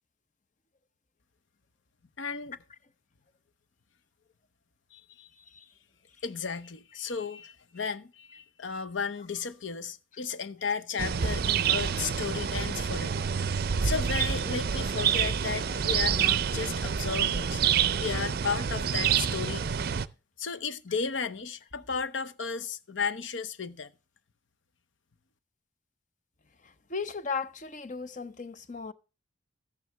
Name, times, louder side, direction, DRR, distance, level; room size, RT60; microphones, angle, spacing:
voice 1, 2.2-2.6 4.9-5.3 6.2-13.3 13.8-17.6 18.0-19.8 20.4-23.9, left 5 dB, 80° left, 0.8 m, -34 dB
sound 1, 11.0-20.1, right 7 dB, 50° right, 0.5 m, -27 dB
voice 2, 26.9-28.9, left 5 dB, 40° left, 0.7 m, -36 dB
12.5 x 9.4 x 3.4 m
head